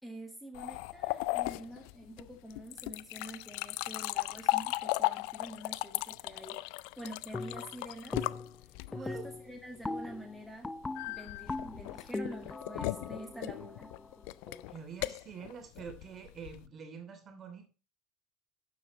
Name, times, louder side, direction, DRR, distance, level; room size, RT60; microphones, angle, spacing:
voice 1, 0.0-8.2 8.9-10.7 11.1-13.9, right 1 dB, ahead, 2 dB, 1.7 m, -47 dB
sound 1, 0.5-9.2 10.9-16.7, left 21 dB, 60° left, 0.3 m, -36 dB
sound 2, 7.3-7.8 8.1-8.6 8.9-14.7, left 3 dB, 15° left, 0.6 m, -40 dB
voice 2, 8.9-9.3 14.7-17.7, right 6 dB, 35° right, 6 dB, 2.9 m, -46 dB
12.0 x 7.5 x 3.0 m, 0.32 s
figure-of-eight pair, 65°, 0 cm